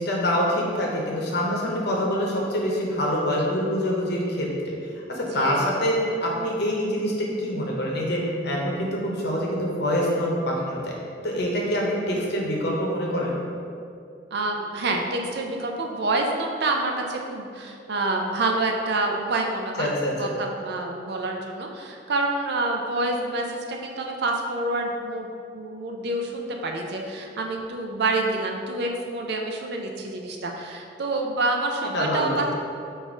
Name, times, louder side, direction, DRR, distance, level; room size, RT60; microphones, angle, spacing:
voice 1, 0.0-4.7 5.1-11.0 11.2-13.3 19.8-20.3 31.9-32.4, equal, 65° left, -2 dB, 0.8 m, -25 dB
voice 2, 5.3-5.8 14.3-19.9 20.2-25.3 25.5-32.5, right 2 dB, 65° right, 2 dB, 0.5 m, -27 dB
4.0 x 2.6 x 4.7 m, 2.5 s
head